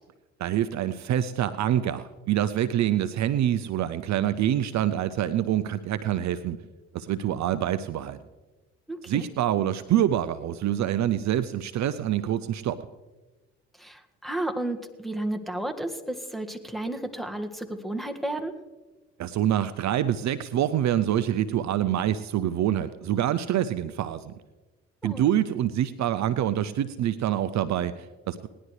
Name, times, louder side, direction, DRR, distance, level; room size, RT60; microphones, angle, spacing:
voice 1, 0.4-6.6 6.9-8.2 9.1-12.8 19.2-24.3 25.0-28.5, right 11 dB, 55° right, 13 dB, 0.6 m, -26 dB
voice 2, 8.9-9.3 13.8-18.5 25.0-25.3, right 1 dB, ahead, 4 dB, 1.7 m, -32 dB
19.5 x 11.0 x 3.2 m, 1.2 s
hypercardioid pair, 55°, 34 cm